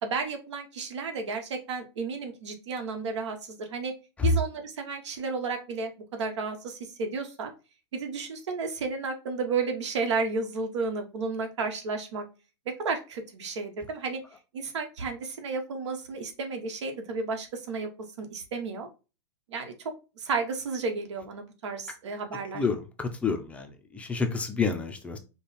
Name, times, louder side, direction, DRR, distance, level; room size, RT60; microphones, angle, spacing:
voice 1, 0.0-3.9 4.2-7.5 7.9-12.2 12.6-14.2 14.5-17.9 18.2-18.9 19.5-19.7 20.2-22.6, right 4 dB, 80° right, 1.4 m, -32 dB
voice 2, 22.5-25.2, left 5 dB, 10° left, 0.5 m, -29 dB
5.2 x 2.3 x 4.2 m
supercardioid pair, 155°, 15 cm